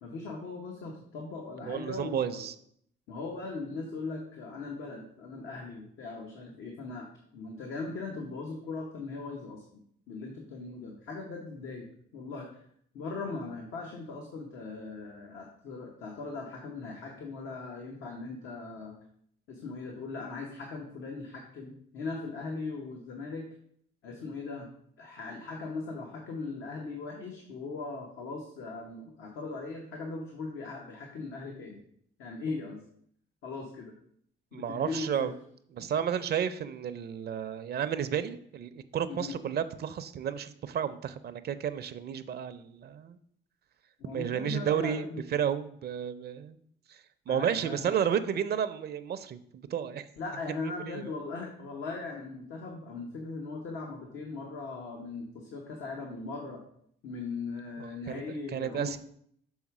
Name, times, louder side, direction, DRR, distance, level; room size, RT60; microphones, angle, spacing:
voice 1, 0.0-2.5 3.1-7.1 7.3-9.8 10.1-11.9 12.1-12.5 12.9-18.9 19.5-23.4 24.0-24.7 25.0-31.8 32.2-32.8 33.4-33.9 34.5-35.3 35.8-35.9 39.1-39.4 44.0-45.2 47.3-47.9 50.2-56.6 57.0-58.9, left 3 dB, 85° left, 0 dB, 1.1 m, -39 dB
voice 2, 1.7-2.5 34.5-35.3 35.8-43.2 44.1-46.6 46.9-47.0 47.3-50.1 50.9-51.1 57.8-58.2 58.5-59.0, right 8 dB, 55° right, 12 dB, 0.5 m, -32 dB
6.4 x 3.5 x 5.9 m, 0.65 s
cardioid pair, 90°, 20 cm